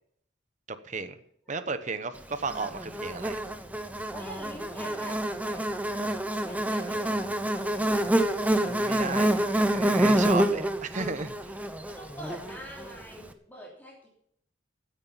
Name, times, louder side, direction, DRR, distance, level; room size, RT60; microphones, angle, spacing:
voice 1, 0.8-1.2 1.5-3.4 8.7-11.3, right 4 dB, 40° right, 11 dB, 1.0 m, -34 dB
Buzz, 2.5-12.9, right 1 dB, 10° right, 0.8 m, -27 dB
voice 2, 4.1-5.7 6.3-8.0 12.0-14.1, equal, 10° left, -4 dB, 3.2 m, -44 dB
15.0 x 9.3 x 5.7 m, 0.68 s
head